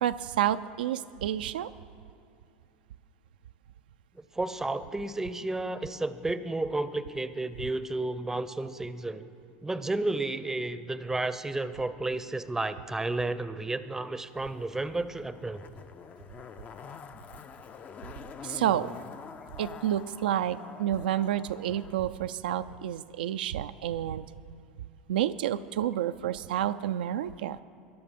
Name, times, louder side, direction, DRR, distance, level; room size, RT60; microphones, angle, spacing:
voice 1, 0.0-1.7 18.4-18.9 19.6-24.3 25.1-27.6, right 11 dB, 85° right, 10 dB, 0.4 m, -29 dB
voice 2, 4.1-9.3 9.6-15.6, right 2 dB, 10° right, 13 dB, 0.6 m, -32 dB
Zipper (clothing), 14.3-22.0 22.3-22.4, left 6 dB, 30° left, 0.5 m, -46 dB
14.5 x 10.5 x 5.2 m, 2.6 s
hypercardioid pair, 95°, 5 cm